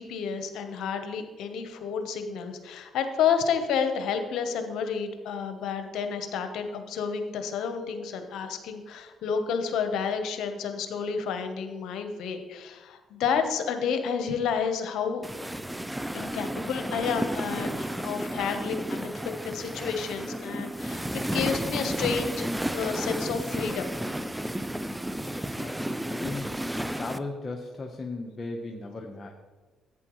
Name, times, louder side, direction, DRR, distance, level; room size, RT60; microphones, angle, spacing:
voice 1, 0.0-15.2 16.1-19.1 19.4-22.4 22.7-23.9, left 6 dB, 75° left, 7 dB, 1.0 m, -30 dB
sound 1, 15.2-27.2, right 1 dB, 10° right, 0.4 m, -32 dB
voice 2, 25.1-29.3, left 3 dB, 35° left, 1 dB, 1.0 m, -37 dB
11.0 x 8.8 x 3.1 m, 1.3 s
supercardioid pair, 65°, 0 cm